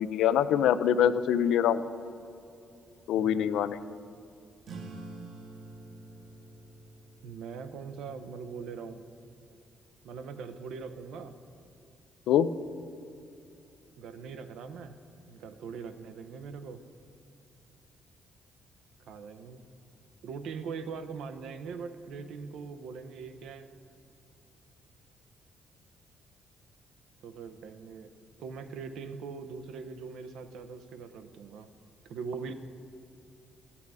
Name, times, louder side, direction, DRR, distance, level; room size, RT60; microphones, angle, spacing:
voice 1, 0.0-1.8 3.1-3.8 12.3-12.5, left 9 dB, 85° left, 13 dB, 0.4 m, -24 dB
voice 2, 3.1-3.5 7.2-9.0 10.0-11.4 14.0-15.0 15.3-16.8 19.1-19.7 20.2-23.7 27.2-28.1 28.4-31.7 32.0-32.5, right 5 dB, 85° right, 9 dB, 0.6 m, -41 dB
sound 1, 4.6-9.7, right 2 dB, 65° right, 1.0 m, -48 dB
12.0 x 8.5 x 4.8 m, 2.7 s
cardioid pair, 90°, 0 cm